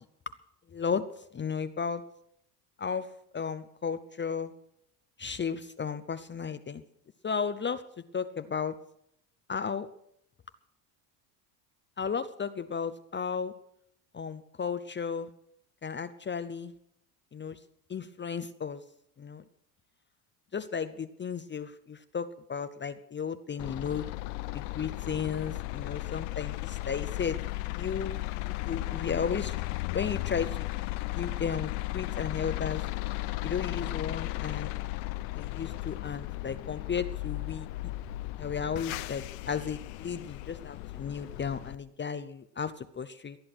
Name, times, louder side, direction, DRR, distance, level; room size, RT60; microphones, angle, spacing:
voice 1, 0.7-2.0 2.8-4.5 5.2-6.8 7.2-7.8 8.1-8.8 9.5-9.9 12.0-13.5 14.1-15.3 15.8-16.7 17.3-17.6 17.9-18.8 19.2-19.4 20.5-24.1 24.5-27.4 27.8-28.2 28.4-29.6 29.9-30.7 31.1-32.8 33.4-34.7 35.3-37.7 38.4-43.4, left 6 dB, 20° left, 11 dB, 0.7 m, -34 dB
sound 1, 23.6-41.8, left 19 dB, 75° left, 0.8 m, -35 dB
19.5 x 11.0 x 6.2 m, 0.73 s
supercardioid pair, 95°, 50 cm